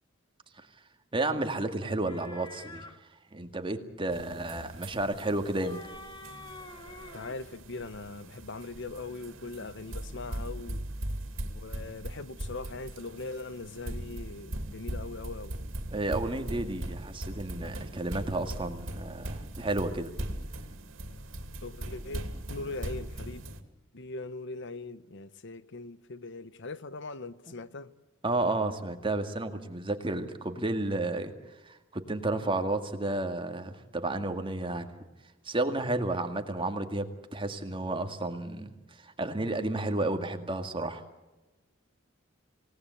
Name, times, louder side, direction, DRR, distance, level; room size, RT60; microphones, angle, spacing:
voice 1, 1.1-2.9 3.3-5.8 15.9-20.1 28.2-31.3 31.6-34.9 35.4-41.0, right 2 dB, 25° right, 2.1 m, -32 dB
sound 1, 2.0-3.0 5.3-7.4, left 2 dB, 25° left, 2.0 m, -47 dB
sound 2, 4.1-23.6, right 1 dB, 90° right, 2.5 m, -40 dB
voice 2, 7.1-10.8 11.5-15.6 21.6-23.4 23.9-27.9, left 3 dB, 65° left, 1.0 m, -40 dB
27.5 x 18.0 x 8.3 m
head